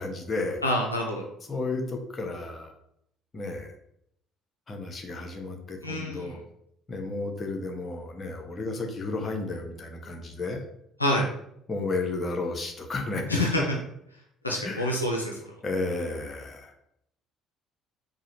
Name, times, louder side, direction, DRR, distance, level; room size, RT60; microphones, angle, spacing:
voice 1, 0.0-0.6 1.4-2.7 3.3-3.7 4.7-6.4 6.9-10.6 11.7-13.4 14.6-14.9 15.6-16.7, left 3 dB, 30° left, 3 dB, 0.7 m, -32 dB
voice 2, 0.6-1.2 5.8-6.4 11.0-11.2 13.3-13.8 14.4-15.3, left 1 dB, 85° left, 0 dB, 0.4 m, -26 dB
4.7 x 2.1 x 3.0 m, 0.74 s
figure-of-eight pair, 50°, 0 cm